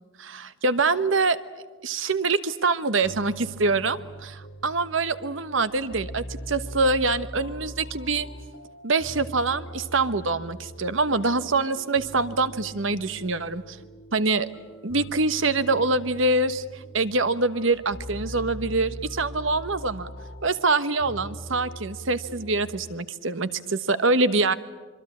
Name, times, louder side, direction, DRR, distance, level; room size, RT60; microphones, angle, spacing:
voice 1, 0.2-1.4 1.8-8.3 8.8-13.8 14.1-14.5 14.8-20.1 20.4-24.5, right 3 dB, 70° right, 13 dB, 1.2 m, -25 dB
sound 1, 3.0-23.0, equal, 80° left, 2.5 m, -41 dB
26.0 x 24.0 x 8.6 m, 1.3 s
head